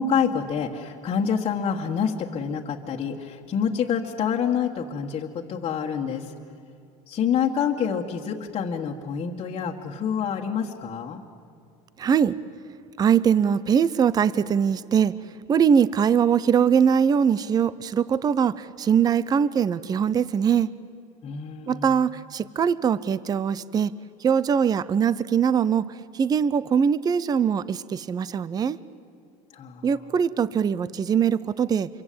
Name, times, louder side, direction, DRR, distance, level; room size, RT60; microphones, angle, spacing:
voice 1, 0.0-6.3 7.1-11.2 21.2-21.9 29.5-29.9, left 7 dB, 35° left, -1 dB, 1.7 m, -27 dB
voice 2, 12.0-12.4 13.0-15.1 15.5-20.7 21.7-23.9 24.2-28.8 29.8-31.9, right 7 dB, 25° right, 19 dB, 0.6 m, -22 dB
26.5 x 23.5 x 8.7 m, 2.5 s
supercardioid pair, 125°, 16 cm